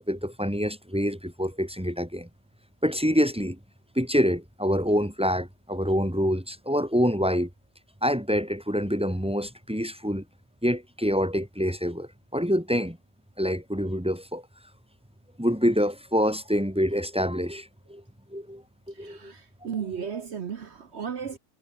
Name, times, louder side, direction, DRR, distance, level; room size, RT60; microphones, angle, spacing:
voice 1, 0.0-2.3 2.8-3.6 3.9-7.5 8.0-10.2 10.6-13.0 13.4-14.4 15.4-18.0 18.3-18.6 19.0-19.3, equal, 5° right, 1.6 m, -26 dB
voice 2, 18.9-21.4, right 7 dB, 50° right, 0.9 m, -35 dB
omnidirectional pair, 2.0 m